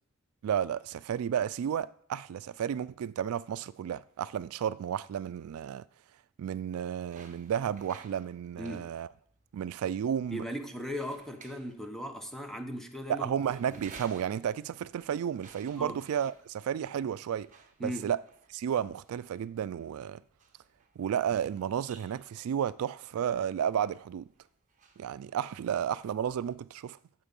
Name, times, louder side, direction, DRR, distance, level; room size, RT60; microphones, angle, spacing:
voice 1, 0.4-5.8 6.4-9.1 9.5-10.4 13.1-17.5 17.8-18.2 18.5-20.2 21.0-24.3 25.0-27.0, right 9 dB, 75° right, 0.3 m, -32 dB
sound 1, 7.1-26.6, right 4 dB, 35° right, 1.2 m, -57 dB
voice 2, 8.6-8.9 10.3-13.3 13.7-13.8 15.7-16.0 17.8-18.1, equal, ahead, 0.8 m, -38 dB
9.0 x 7.3 x 5.3 m
head